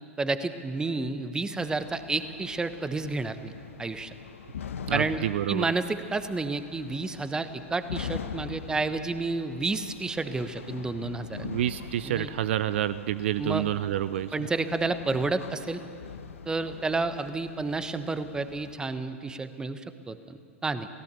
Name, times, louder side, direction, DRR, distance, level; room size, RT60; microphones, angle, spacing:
voice 1, 0.2-3.5 3.8-4.1 4.9-11.5 12.0-12.3 13.4-13.6 14.3-15.8 16.5-20.9, right 3 dB, 10° right, 11 dB, 1.1 m, -30 dB
sound 1, 1.6-18.8, left 7 dB, 70° left, 1.4 m, -43 dB
voice 2, 4.9-5.7 11.4-14.3, right 13 dB, 55° right, 15 dB, 0.5 m, -28 dB
29.5 x 17.5 x 7.0 m, 2.4 s
figure-of-eight pair, 100°, 7 cm